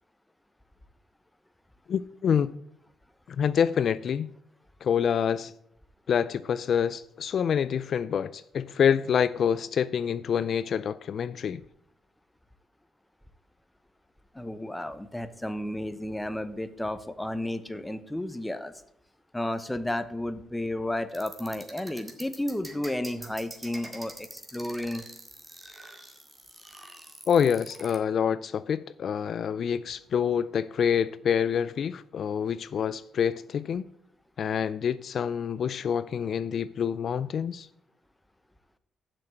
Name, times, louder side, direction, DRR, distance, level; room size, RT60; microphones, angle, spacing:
voice 1, 1.9-2.5 3.4-4.3 4.8-5.5 6.1-11.6 27.3-33.9 34.4-37.7, left 8 dB, 55° left, 0.3 m, -27 dB
voice 2, 14.3-18.7 19.3-25.0, left 1 dB, 10° left, 0.9 m, -32 dB
sound 1, 21.1-28.0, right 1 dB, 15° right, 1.9 m, -44 dB
7.6 x 5.9 x 7.9 m
cardioid pair, 90°, 0 cm